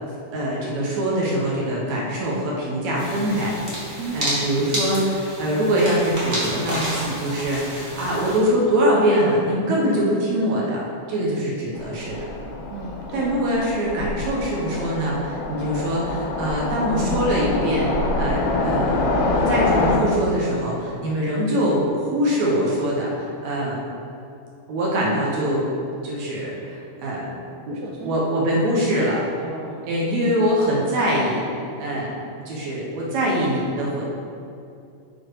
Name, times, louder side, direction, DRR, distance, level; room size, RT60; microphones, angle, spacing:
voice 1, 0.3-3.5 3.8-10.8 11.1-12.2 13.1-19.0 19.3-21.8 22.1-23.8 24.7-25.7 26.0-27.3 27.7-29.2 29.9-31.4 31.8-32.1 32.5-34.0, equal, 70° right, -4 dB, 2.1 m, -23 dB
sound 1, 3.0-8.4, equal, 45° right, 0.6 m, -30 dB
voice 2, 4.0-4.3 12.7-13.3 27.7-28.3 29.4-30.0, right 5 dB, 85° right, 0 dB, 1.6 m, -35 dB
Train, 11.8-20.0, left 2 dB, 80° left, 2.1 m, -25 dB
6.8 x 4.3 x 4.6 m, 2.5 s
omnidirectional pair, 3.6 m